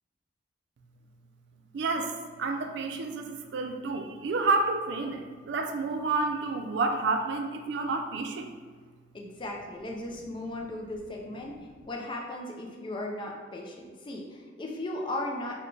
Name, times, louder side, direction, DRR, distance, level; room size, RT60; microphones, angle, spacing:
voice 1, 1.7-8.5, right 3 dB, 60° right, 5 dB, 0.3 m, -30 dB
voice 2, 9.1-11.6 11.9-15.7, left 1 dB, 25° left, 0 dB, 0.4 m, -36 dB
4.1 x 2.2 x 3.2 m, 1.5 s
head